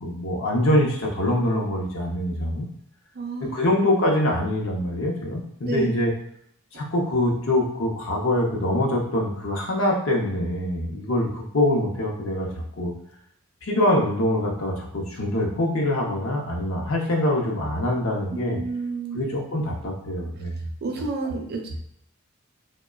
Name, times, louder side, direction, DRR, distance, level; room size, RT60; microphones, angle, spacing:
voice 1, 0.0-2.7 3.4-6.1 6.7-12.5 12.8-12.9 13.6-18.6 19.2-20.6 21.2-21.3, left 1 dB, 70° left, -1 dB, 0.7 m, -24 dB
voice 2, 3.1-3.7 5.6-5.9 18.3-19.2 20.8-21.8, right 3 dB, 50° right, 2 dB, 0.5 m, -30 dB
2.8 x 2.2 x 2.3 m, 0.69 s
head